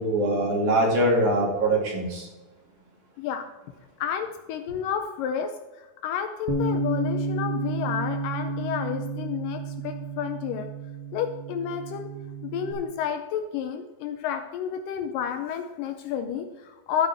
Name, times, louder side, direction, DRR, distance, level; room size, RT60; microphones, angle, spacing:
voice 1, 0.0-2.3, right 1 dB, 55° right, -2 dB, 3.7 m, -23 dB
voice 2, 3.2-3.5 4.0-10.7 11.1-12.1 12.4-17.1, left 8 dB, 80° left, 7 dB, 2.1 m, -31 dB
Bass guitar, 6.5-12.7, right 3 dB, 80° right, 3.1 m, -31 dB
13.0 x 9.2 x 3.5 m, 1.1 s
omnidirectional pair, 4.2 m